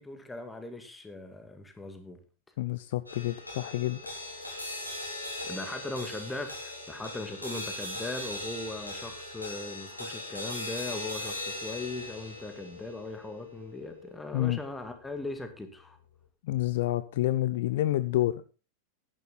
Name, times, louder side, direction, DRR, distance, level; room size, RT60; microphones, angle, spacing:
voice 1, 0.0-2.2 5.4-16.0, left 2 dB, 10° left, 7 dB, 2.1 m, -39 dB
voice 2, 2.6-4.0 4.4-4.5 14.3-14.6 16.4-18.5, left 15 dB, 55° left, 14 dB, 0.6 m, -28 dB
sound 1, 3.1-15.6, left 1 dB, 85° left, 3.7 m, -40 dB
10.5 x 10.5 x 4.1 m, 0.32 s
figure-of-eight pair, 90°, 0 cm